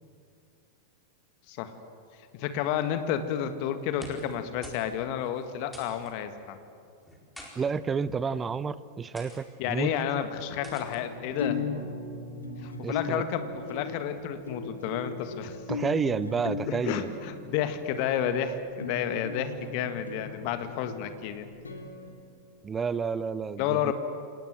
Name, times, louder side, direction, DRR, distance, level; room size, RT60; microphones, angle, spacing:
voice 1, 2.3-6.6 9.6-11.6 12.6-15.6 16.6-21.5 23.6-23.9, left 9 dB, 45° left, 9 dB, 1.8 m, -31 dB
sound 1, 4.0-4.4 4.6-4.9 5.2-5.3 5.7-6.1 7.0-7.5 8.3-8.5 9.1-9.4 10.6-11.0, equal, ahead, 4.5 m, -46 dB
voice 2, 7.6-9.9 12.8-13.2 15.7-17.1 22.6-23.9, right 5 dB, 20° right, 17 dB, 0.7 m, -30 dB
sound 2, 10.6-22.1, left 4 dB, 75° left, 2.8 m, -37 dB
26.5 x 19.5 x 7.9 m, 2.4 s
figure-of-eight pair, 90°, 0 cm